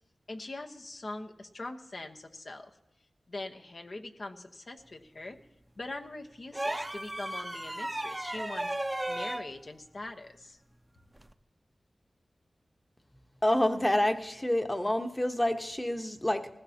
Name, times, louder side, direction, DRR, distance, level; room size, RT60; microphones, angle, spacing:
voice 1, 0.3-2.7 3.3-5.4 5.8-8.7 9.1-10.6, left 2 dB, 60° left, 4 dB, 1.1 m, -42 dB
sound 1, 6.5-9.5 11.2-11.3, right 1 dB, 20° right, 0.7 m, -34 dB
voice 2, 13.4-16.5, left 1 dB, 20° left, 6 dB, 1.1 m, -28 dB
20.0 x 15.5 x 2.9 m, 0.90 s
cardioid pair, 50°, 0 cm